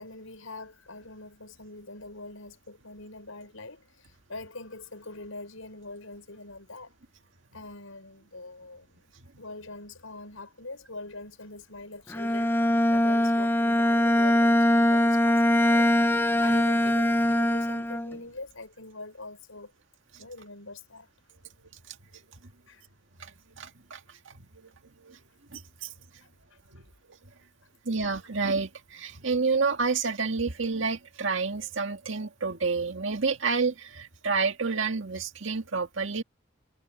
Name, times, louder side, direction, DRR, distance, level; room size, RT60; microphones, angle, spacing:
voice 1, 0.0-6.9 7.5-9.0 9.4-19.7 20.2-21.1 22.7-22.9 24.4-24.6 26.5-26.8, left 2 dB, 85° left, 6.4 m, -43 dB
Bowed string instrument, 12.1-18.2, left 1 dB, 10° left, 0.8 m, -22 dB
voice 2, 23.2-25.2 25.5-25.9 26.7-26.8 27.1-27.2 27.9-36.2, right 4 dB, 70° right, 1.9 m, -30 dB
head